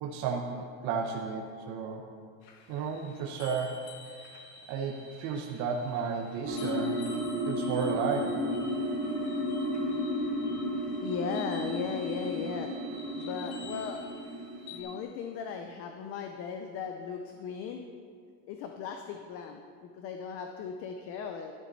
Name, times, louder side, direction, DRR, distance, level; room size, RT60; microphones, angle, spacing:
voice 1, 0.0-2.0 2.7-4.3 4.7-7.0 7.5-8.4, right 5 dB, 40° right, 0 dB, 0.9 m, -33 dB
sound 1, 2.4-14.8, left 3 dB, 60° left, 1.5 m, -50 dB
sound 2, 6.4-15.0, equal, 20° right, 3.3 m, -33 dB
voice 2, 11.0-12.7 13.2-14.0 14.7-17.8 18.5-21.5, left 6 dB, 35° left, 5 dB, 0.5 m, -37 dB
12.0 x 10.5 x 4.0 m, 2.2 s
cardioid pair, 175°, 41 cm